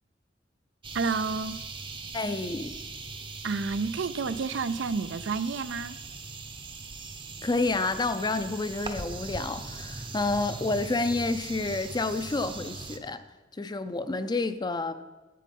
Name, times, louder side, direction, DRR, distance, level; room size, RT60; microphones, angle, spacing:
sound 1, 0.8-13.0, right 3 dB, 30° right, 0.7 m, -40 dB
voice 1, 0.9-1.6 3.4-6.0, right 4 dB, 80° right, 14 dB, 0.5 m, -30 dB
voice 2, 2.1-2.8 7.4-13.2 13.6-14.9, left 3 dB, 25° left, 12 dB, 0.5 m, -29 dB
9.4 x 8.3 x 5.3 m, 1.2 s
head